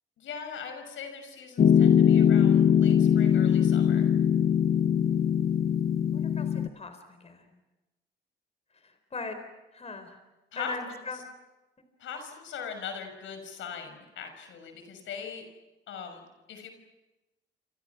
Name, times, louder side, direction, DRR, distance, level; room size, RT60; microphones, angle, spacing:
voice 1, 0.2-4.1 10.5-10.7 12.0-15.4 15.9-16.7, left 6 dB, 80° left, 6 dB, 6.1 m, -40 dB
Piano, 1.6-6.7, left 8 dB, 50° left, 0.9 m, -21 dB
voice 2, 5.0-5.3 6.1-7.5 8.7-9.4 9.7-10.2 10.6-11.2, left 3 dB, 30° left, 8 dB, 4.2 m, -40 dB
29.5 x 26.5 x 6.0 m, 1.1 s
cardioid pair, 90°, 20 cm